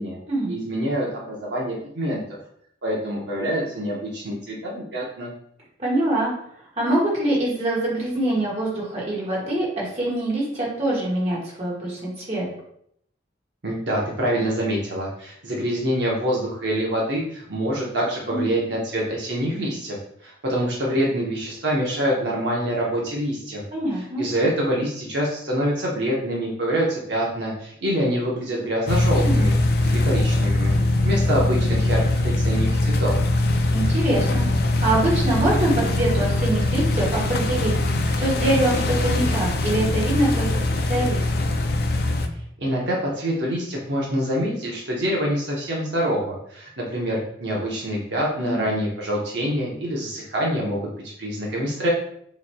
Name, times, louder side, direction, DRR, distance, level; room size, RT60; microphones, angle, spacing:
voice 1, 0.5-2.2 2.8-5.3 13.6-20.0 20.2-23.6 23.9-29.5 29.8-30.7 31.0-33.3 42.6-51.9, equal, 65° right, -3 dB, 0.9 m, -26 dB
voice 2, 5.8-6.3 6.8-12.4 18.3-18.5 23.7-24.2 29.2-29.4 33.7-34.4 34.8-40.5 40.8-41.5 48.4-48.7, right 1 dB, 35° right, -5 dB, 1.5 m, -24 dB
sound 1, 28.9-42.3, left 1 dB, 55° left, 0.4 m, -22 dB
6.7 x 3.1 x 2.2 m, 0.70 s
head